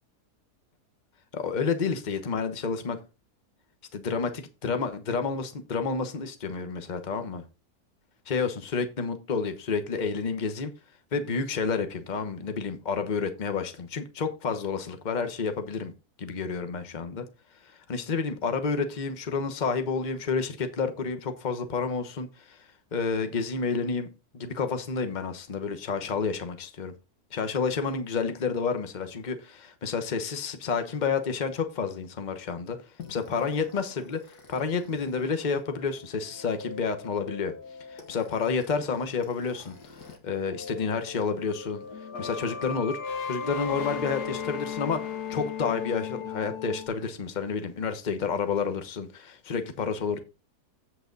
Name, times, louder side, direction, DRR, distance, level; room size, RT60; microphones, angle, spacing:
voice 1, 1.3-3.0 3.9-7.4 8.3-10.7 11.1-15.9 16.2-17.2 17.9-22.6 22.9-24.1 24.3-26.9 27.3-32.8 33.1-34.2 34.5-37.5 37.9-39.7 40.2-41.8 42.2-43.0 43.3-50.2, left 5 dB, 30° left, 1.0 m, -30 dB
sound 1, 33.0-40.2 40.5-46.9, left 6 dB, 75° left, 1.9 m, -38 dB
8.1 x 7.8 x 3.9 m
omnidirectional pair, 1.7 m